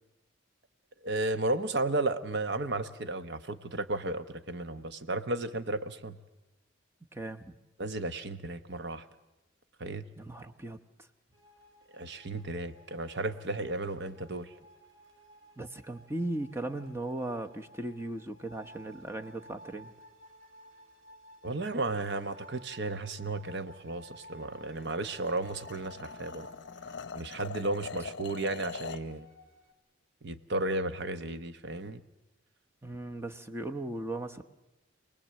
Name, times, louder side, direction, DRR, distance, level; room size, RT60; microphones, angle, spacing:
voice 1, 1.0-6.2 7.8-9.0 9.8-10.1 11.9-14.5 21.4-26.5 27.1-29.3 30.2-32.0, right 2 dB, 55° right, 10 dB, 1.0 m, -34 dB
voice 2, 7.1-7.6 10.2-10.8 15.6-19.9 32.8-34.4, right 1 dB, 15° right, 5 dB, 0.9 m, -37 dB
sound 1, 11.3-29.7, equal, 80° right, 3.7 m, -55 dB
sound 2, 24.7-29.1, left 5 dB, 60° left, 0.7 m, -43 dB
26.5 x 19.0 x 7.5 m, 1.0 s
head